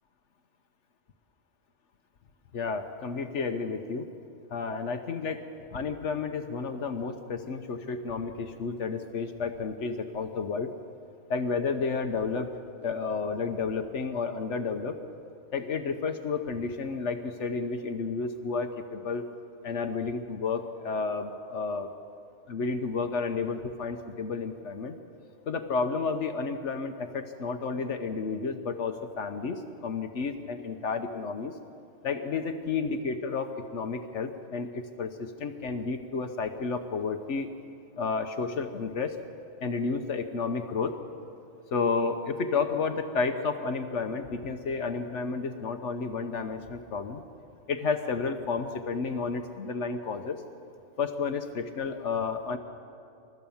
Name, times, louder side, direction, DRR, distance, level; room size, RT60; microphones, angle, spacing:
voice 1, 2.5-4.1 4.5-10.7 11.3-12.5 12.8-15.0 15.5-19.2 19.6-21.9 22.5-25.0 25.5-31.5 32.0-37.5 38.0-39.2 39.6-40.9 41.7-47.2 47.7-50.4 51.0-52.6, left 4 dB, 80° left, 6 dB, 1.2 m, -31 dB
29.5 x 13.5 x 7.1 m, 2.6 s
omnidirectional pair, 1.2 m